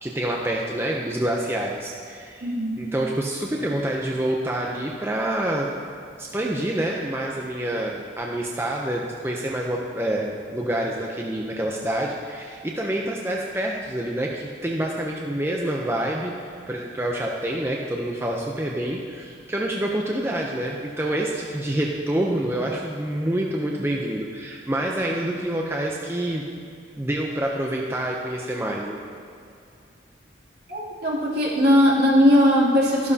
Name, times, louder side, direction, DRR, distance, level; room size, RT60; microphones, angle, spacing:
voice 1, 0.0-5.7 6.2-26.4 27.0-29.0, right 1 dB, 15° right, -1 dB, 0.6 m, -27 dB
voice 2, 2.4-2.8 30.7-33.1, equal, 60° right, -7 dB, 2.8 m, -19 dB
12.5 x 12.0 x 2.8 m, 2.5 s
head